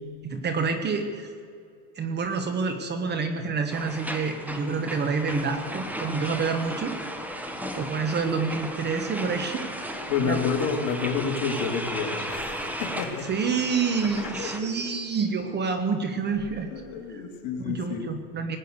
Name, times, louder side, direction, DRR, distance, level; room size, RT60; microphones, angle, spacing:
voice 1, 0.2-1.3 1.9-7.0 7.7-9.7 10.2-10.4 13.3-16.7 17.1-17.2 17.6-18.6, right 5 dB, 25° right, 8 dB, 1.2 m, -28 dB
sound 1, 3.7-14.6, equal, 5° right, 1.2 m, -35 dB
voice 2, 10.1-13.3 14.2-14.5 16.7-18.1, left 6 dB, 45° left, 2 dB, 2.9 m, -29 dB
19.5 x 9.0 x 8.1 m, 2.3 s
supercardioid pair, 140°, 44 cm